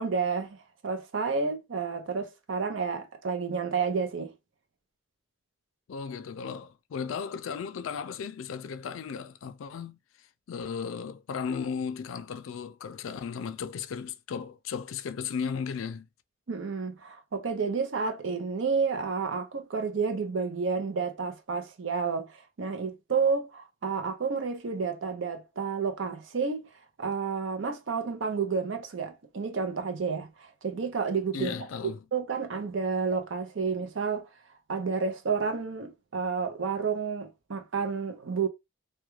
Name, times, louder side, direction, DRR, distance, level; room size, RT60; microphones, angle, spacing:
voice 1, 0.0-4.3 16.5-26.7 27.0-31.5 32.1-34.3 34.7-38.5, right 5 dB, 70° right, 0.6 m, -30 dB
voice 2, 5.9-10.0 10.5-16.1 31.3-32.0, left 6 dB, 80° left, 0.4 m, -35 dB
2.3 x 2.2 x 3.0 m
head